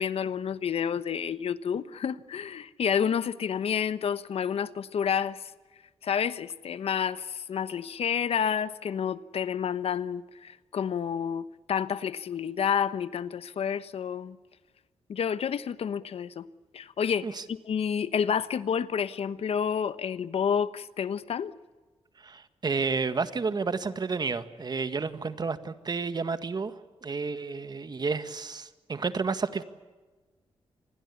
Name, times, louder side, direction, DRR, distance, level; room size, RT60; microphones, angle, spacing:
voice 1, 0.0-5.5 6.0-14.4 15.1-16.5 16.7-21.5, left 7 dB, 70° left, 1.1 m, -29 dB
voice 2, 22.2-29.6, right 4 dB, 40° right, 1.8 m, -31 dB
28.0 x 21.0 x 8.4 m
cardioid pair, 90°, 11 cm